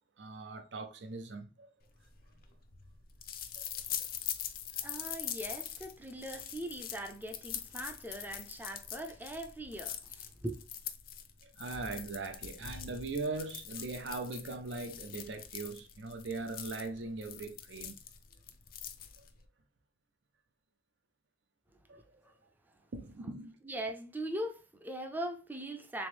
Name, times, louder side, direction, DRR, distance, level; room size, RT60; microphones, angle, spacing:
voice 1, 0.2-1.7 3.4-3.7 4.0-4.1 11.4-18.0 19.2-19.3 21.9-22.0 22.9-23.5, right 3 dB, 75° right, 0.6 m, -40 dB
sound 1, 2.0-19.4, left 10 dB, 50° left, 0.5 m, -43 dB
voice 2, 4.8-10.6 22.2-22.3 23.6-26.1, right 1 dB, 10° right, 0.4 m, -41 dB
3.5 x 3.0 x 3.4 m
head